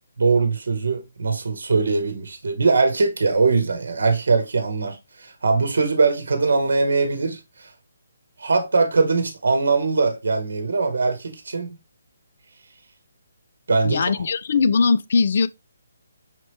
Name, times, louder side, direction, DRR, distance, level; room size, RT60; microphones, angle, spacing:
voice 1, 0.2-7.7 8.4-11.7 13.7-14.2, right 4 dB, 75° right, 0.9 m, -21 dB
voice 2, 13.8-15.5, left 5 dB, 55° left, 0.3 m, -20 dB
5.7 x 3.0 x 3.0 m
figure-of-eight pair, 150°, 0 cm